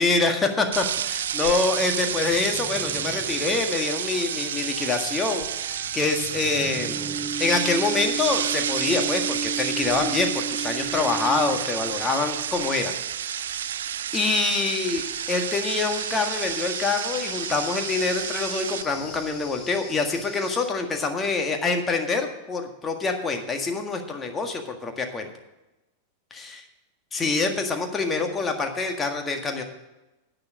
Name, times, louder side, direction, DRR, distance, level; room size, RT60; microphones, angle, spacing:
voice 1, 0.0-12.9 13.4-13.6 14.1-25.3 26.3-26.6 27.1-29.6, left 3 dB, 15° left, 4 dB, 1.7 m, -26 dB
sound 1, 0.7-18.8, right 9 dB, 60° right, 0.4 m, -30 dB
sound 2, 1.0-12.0, right 5 dB, 20° right, 0.6 m, -36 dB
sound 3, 7.9-20.7, left 3 dB, 35° left, 3.9 m, -42 dB
10.5 x 9.1 x 5.1 m, 1.0 s
figure-of-eight pair, 90°, 0 cm